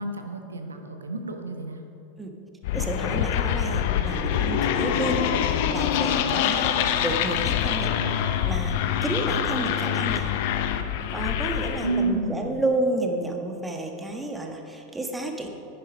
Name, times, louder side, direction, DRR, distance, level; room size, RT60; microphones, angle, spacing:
voice 1, 0.0-1.8 11.8-12.6, right 2 dB, 90° right, 5 dB, 1.1 m, -30 dB
sound 1, 2.6-12.0, left 9 dB, 60° left, 0.7 m, -25 dB
voice 2, 2.7-8.0 8.4-10.3 11.1-15.5, right 1 dB, 10° right, 3 dB, 1.5 m, -31 dB
10.5 x 9.7 x 5.1 m, 2.9 s
hypercardioid pair, 95°, 0 cm